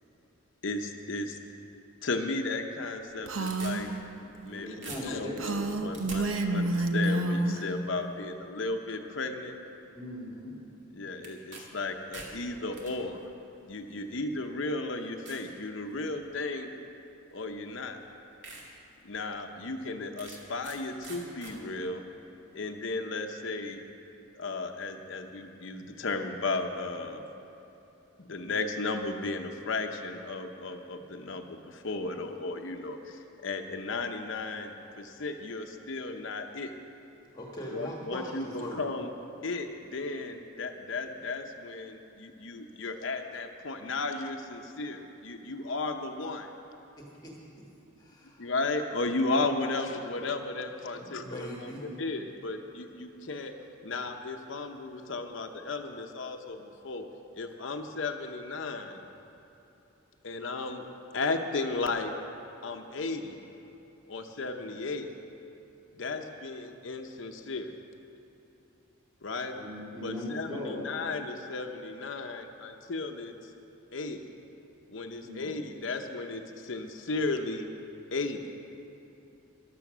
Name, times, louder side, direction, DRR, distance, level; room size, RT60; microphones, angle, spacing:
voice 1, 0.6-1.4 2.0-3.9 4.2-9.5 10.9-13.3 13.6-16.7 17.3-18.0 19.0-22.0 22.5-23.8 24.3-27.2 28.2-36.7 37.7-39.1 39.4-46.5 48.4-53.5 53.8-57.0 57.3-59.0 60.2-60.8 61.1-62.1 62.6-63.4 64.1-65.1 66.0-67.7 69.2-69.6 70.0-73.3 73.9-74.2 74.9-77.7 78.1-78.4, left 3 dB, 65° left, 5 dB, 0.8 m, -35 dB
sound 1, 3.0-4.5 4.8-6.2 11.2-11.6 11.9-12.9 13.8-13.9 14.5-14.6 15.3-15.5 16.0-16.3 17.5-17.6 18.0-18.1 18.4-18.6 19.1-19.2 20.2-20.8 21.0-21.5, right 3 dB, 60° right, 2.3 m, -45 dB
Female speech woman speaking, 3.3-3.9 5.4-7.6, right 2 dB, 80° right, 0.9 m, -29 dB
voice 2, 4.5-5.6 9.9-10.6 69.5-70.9 75.2-75.6, left 1 dB, 20° right, -4 dB, 3.6 m, -39 dB
voice 3, 37.3-38.8 47.0-47.6 48.0-48.5 51.0-51.8, equal, 20° left, -2 dB, 1.4 m, -41 dB
14.0 x 11.5 x 6.1 m, 3.0 s
head